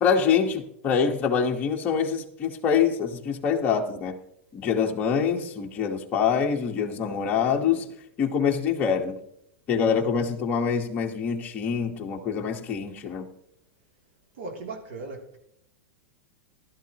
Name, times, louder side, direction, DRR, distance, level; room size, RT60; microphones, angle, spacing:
voice 1, 0.0-4.2 4.5-7.9 8.2-9.2 9.7-13.3, left 6 dB, 20° left, 1.4 m, -25 dB
voice 2, 14.4-15.4, right 3 dB, 65° right, 3.1 m, -37 dB
15.5 x 12.5 x 3.0 m
supercardioid pair, 155°, 7 cm